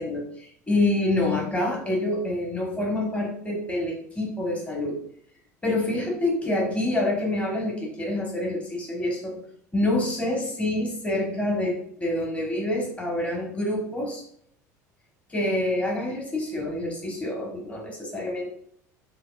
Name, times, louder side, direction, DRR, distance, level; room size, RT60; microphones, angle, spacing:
voice 1, 0.0-5.0 5.6-9.4 9.7-14.2 15.3-18.6, left 1 dB, 15° left, -2 dB, 1.1 m, -27 dB
4.0 x 3.0 x 2.3 m, 0.64 s
hypercardioid pair, 70°, 9 cm